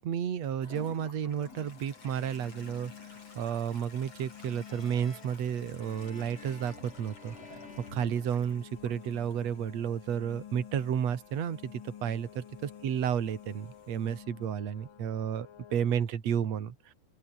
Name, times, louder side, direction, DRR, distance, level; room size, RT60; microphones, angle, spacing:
voice 1, 0.0-7.4 7.8-12.4 12.8-16.9, right 8 dB, 55° right, 3.2 m, -32 dB
Toilet flush, 0.6-14.2, left 3 dB, 50° left, 8.1 m, -55 dB
sound 1, 1.4-16.0, left 9 dB, 85° left, 3.8 m, -51 dB
sound 2, 4.3-8.9, left 2 dB, 20° left, 3.9 m, -53 dB
open air
omnidirectional pair, 3.8 m